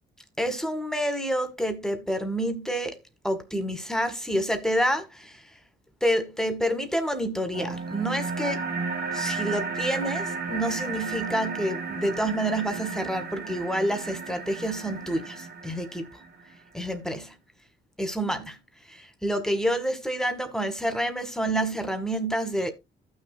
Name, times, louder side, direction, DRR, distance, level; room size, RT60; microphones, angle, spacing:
voice 1, 0.4-3.0 3.2-5.4 6.0-8.6 9.1-16.1 16.7-17.3 18.0-18.6 18.9-22.7, equal, 5° left, 1.7 m, -28 dB
sound 1, 7.5-16.5, right 4 dB, 50° right, 1.7 m, -33 dB
15.0 x 6.3 x 2.2 m
cardioid pair, 90°, 20 cm